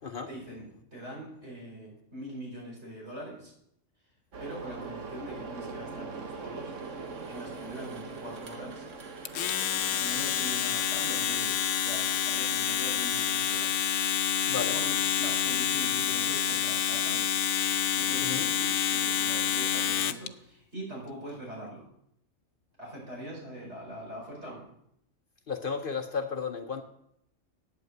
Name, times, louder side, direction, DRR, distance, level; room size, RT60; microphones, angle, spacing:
voice 1, 0.3-3.5 4.4-6.7 7.3-8.8 9.9-14.3 14.7-17.3 18.0-21.9 22.8-24.7, right 1 dB, 60° right, -3 dB, 5.6 m, -43 dB
sound 1, 4.3-13.7, right 4 dB, 90° right, 1.7 m, -43 dB
Domestic sounds home sounds, 9.2-20.3, left 9 dB, 90° left, 1.0 m, -28 dB
voice 2, 14.5-14.8 18.2-18.5 25.5-26.8, left 5 dB, 50° left, 6 dB, 1.0 m, -33 dB
9.1 x 8.3 x 7.9 m, 0.75 s
omnidirectional pair, 1.3 m